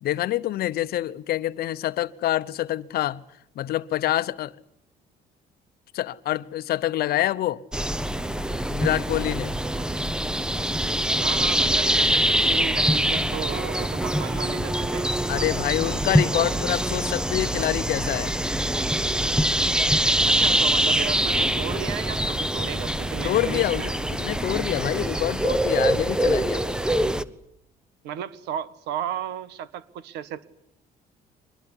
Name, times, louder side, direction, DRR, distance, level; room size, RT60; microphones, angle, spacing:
voice 1, 0.0-3.2 3.6-4.5 5.9-7.6 8.7-9.6 15.3-18.3 23.2-26.8, left 13 dB, 65° left, 1.0 m, -26 dB
sound 1, 7.7-27.2, right 1 dB, 5° right, 0.9 m, -24 dB
voice 2, 11.2-15.1 16.2-16.6 20.2-23.9 28.0-30.5, right 10 dB, 85° right, 1.6 m, -34 dB
23.5 x 20.5 x 10.0 m
cardioid pair, 110°, 17 cm